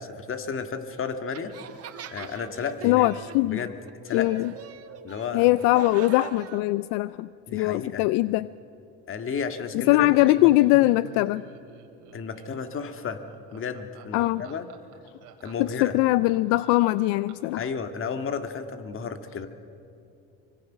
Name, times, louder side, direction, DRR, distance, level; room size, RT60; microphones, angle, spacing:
voice 1, 0.0-1.6 2.1-3.1 3.4-3.8 4.0-4.3 5.0-5.5 7.5-8.0 9.1-10.5 12.1-13.2 13.5-14.7 15.4-16.0 17.6-19.5, left 6 dB, 40° left, 8 dB, 1.9 m, -33 dB
sound 1, 1.3-6.7, right 9 dB, 45° right, 1.5 m, -42 dB
voice 2, 2.8-3.6 4.1-4.5 5.3-8.5 9.9-11.4 14.1-14.4 15.6-17.6, left 18 dB, 75° left, 17 dB, 0.5 m, -21 dB
Laughter, 9.7-17.6, right 9 dB, 75° right, 2.8 m, -49 dB
25.0 x 23.0 x 6.2 m, 2.7 s
supercardioid pair, 95°, 32 cm